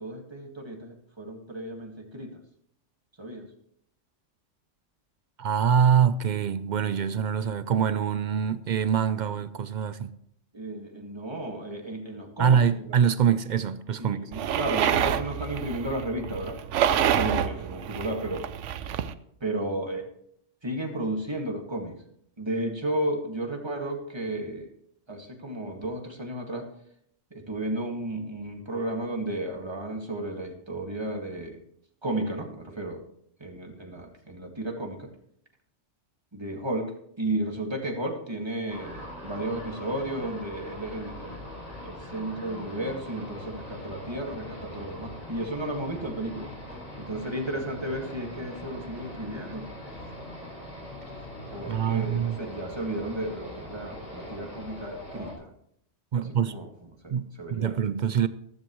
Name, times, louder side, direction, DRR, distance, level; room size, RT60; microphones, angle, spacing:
voice 1, 0.0-2.4 3.2-3.5 10.5-13.0 14.0-16.6 17.1-18.5 19.4-20.1 20.6-22.0 22.4-24.7 25.1-26.7 27.3-31.6 32.0-33.0 33.4-35.1 36.3-41.4 41.8-46.5 47.0-49.6 51.1-51.2 51.5-55.5 56.1-57.8, right 1 dB, 20° right, 1.9 m, -33 dB
voice 2, 5.4-10.1 12.4-14.3 51.7-52.4 56.1-56.6 57.1-57.2 57.5-58.3, right 8 dB, 55° right, 0.5 m, -24 dB
sound 1, 14.3-19.1, right 9 dB, 75° right, 0.9 m, -27 dB
sound 2, 38.7-55.3, left 1 dB, 30° left, 4.4 m, -41 dB
14.5 x 13.5 x 3.1 m
omnidirectional pair, 1.3 m